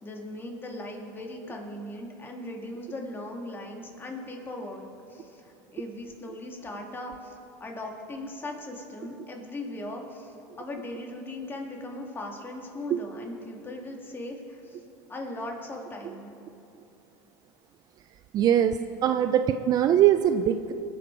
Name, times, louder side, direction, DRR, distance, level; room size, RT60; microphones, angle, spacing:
voice 1, 0.0-14.8 15.1-16.3, left 1 dB, 20° left, 1 dB, 2.2 m, -39 dB
voice 2, 18.3-20.7, right 10 dB, 40° right, 9 dB, 0.4 m, -22 dB
20.5 x 7.9 x 4.6 m, 2.8 s
supercardioid pair, 110°, 10 cm